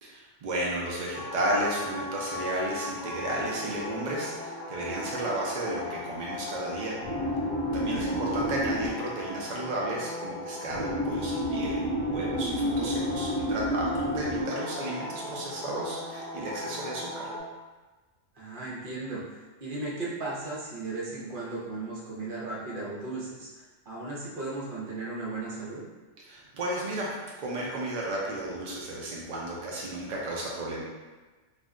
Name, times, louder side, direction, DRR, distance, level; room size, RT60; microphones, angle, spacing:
voice 1, 0.0-7.0 7.7-17.3 26.3-30.8, right 1 dB, 65° right, -4 dB, 0.4 m, -33 dB
sound 1, 1.1-17.4, equal, 25° left, 0.8 m, -33 dB
voice 2, 18.4-25.8, right 2 dB, 50° right, -6 dB, 0.8 m, -36 dB
2.5 x 2.1 x 3.6 m, 1.3 s
omnidirectional pair, 1.3 m